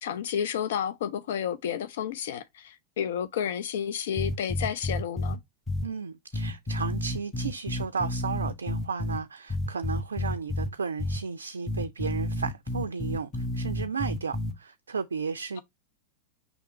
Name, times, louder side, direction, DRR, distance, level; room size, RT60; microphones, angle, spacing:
voice 1, 0.0-5.4, left 8 dB, 55° left, 0.4 m, -31 dB
sound 1, 4.2-5.3 5.7-5.8 6.3-9.2 9.5-10.7 11.0-11.2 11.7-14.5, left 1 dB, 15° left, 1.3 m, -30 dB
voice 2, 5.8-15.6, right 5 dB, 70° right, 0.3 m, -34 dB
5.2 x 3.5 x 2.8 m
figure-of-eight pair, 90°, 0 cm